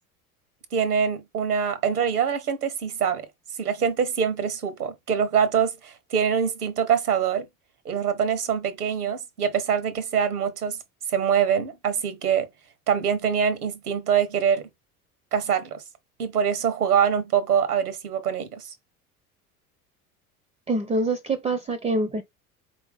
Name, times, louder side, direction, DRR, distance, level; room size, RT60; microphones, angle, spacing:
voice 1, 0.7-3.3 3.6-7.5 7.8-10.8 11.1-12.5 12.9-14.7 15.3-15.8 16.2-18.7, right 7 dB, 80° right, 0.9 m, -24 dB
voice 2, 20.7-22.2, right 2 dB, 15° right, 0.5 m, -25 dB
4.4 x 2.7 x 3.3 m
figure-of-eight pair, 70°, 45 cm